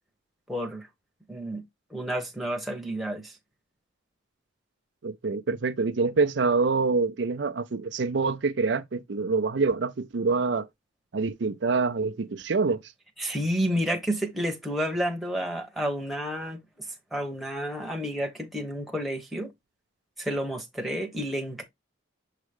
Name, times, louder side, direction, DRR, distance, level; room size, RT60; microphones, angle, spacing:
voice 1, 0.5-0.9 1.3-1.6 1.9-3.4 13.2-16.9 17.1-19.5 20.2-21.6, equal, ahead, 1.2 m, -30 dB
voice 2, 5.0-10.7 11.1-12.8, right 4 dB, 60° right, 0.5 m, -26 dB
7.3 x 3.6 x 3.6 m
head